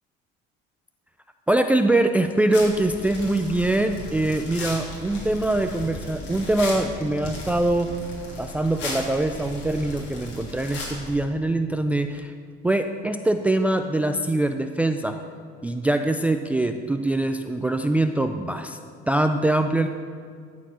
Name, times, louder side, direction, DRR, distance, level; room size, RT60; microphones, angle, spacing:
voice 1, 1.5-7.9 8.4-12.3 12.6-15.2 15.6-18.8 19.1-19.9, right 2 dB, 5° right, 7 dB, 0.3 m, -23 dB
sound 1, 2.5-11.2, left 2 dB, 60° left, 3.0 m, -36 dB
13.0 x 4.6 x 7.4 m, 2.2 s
cardioid pair, 130°, 21 cm